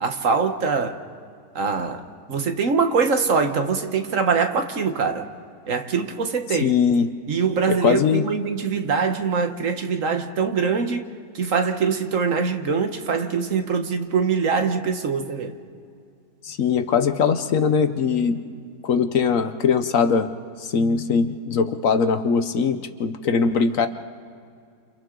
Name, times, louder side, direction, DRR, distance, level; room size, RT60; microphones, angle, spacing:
voice 1, 0.0-1.0 1.5-5.3 5.7-6.7 7.3-11.1 11.3-15.5, right 5 dB, 60° right, 1.5 m, -23 dB
voice 2, 6.6-7.1 7.8-8.3 16.4-18.4 18.8-20.3 20.6-23.9, left 6 dB, 60° left, 1.2 m, -21 dB
30.0 x 28.5 x 3.8 m
omnidirectional pair, 1.6 m